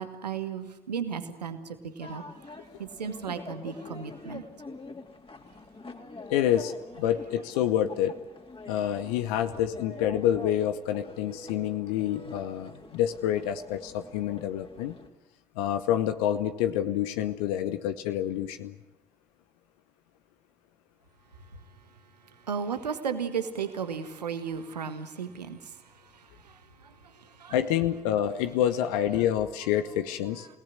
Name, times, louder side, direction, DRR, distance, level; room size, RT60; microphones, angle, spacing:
voice 1, 0.0-2.2 2.8-4.4 22.5-25.7 26.1-27.6, right 6 dB, 90° right, 10 dB, 1.4 m, -35 dB
sound 1, 2.0-15.1, left 3 dB, 25° left, 3.3 m, -45 dB
voice 2, 6.3-8.2 8.7-15.0 15.6-18.7 27.5-30.5, left 11 dB, 75° left, 10 dB, 1.1 m, -27 dB
28.0 x 18.5 x 9.6 m, 0.91 s
figure-of-eight pair, 45°, 20 cm